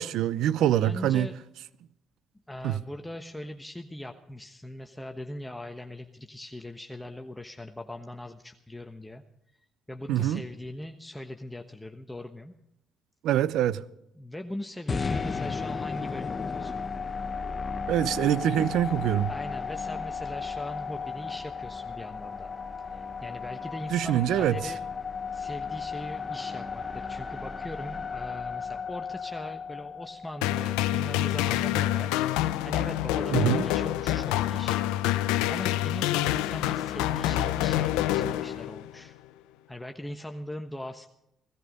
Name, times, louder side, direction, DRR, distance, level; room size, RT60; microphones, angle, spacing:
voice 1, 0.0-1.3 2.6-2.8 10.1-10.4 13.2-13.8 17.9-19.3 23.9-24.6 33.3-33.6, right 11 dB, 75° right, 0.6 m, -24 dB
voice 2, 0.8-1.4 2.5-9.2 9.9-12.5 14.1-16.9 19.3-22.5 22.8-24.8 25.3-34.8 35.5-39.1 39.7-41.1, left 1 dB, 10° left, 1.2 m, -40 dB
sound 1, 14.9-31.0, left 5 dB, 35° left, 1.3 m, -35 dB
sound 2, 30.4-38.9, left 13 dB, 85° left, 0.6 m, -27 dB
17.5 x 14.0 x 5.3 m
hypercardioid pair, 55°, 0 cm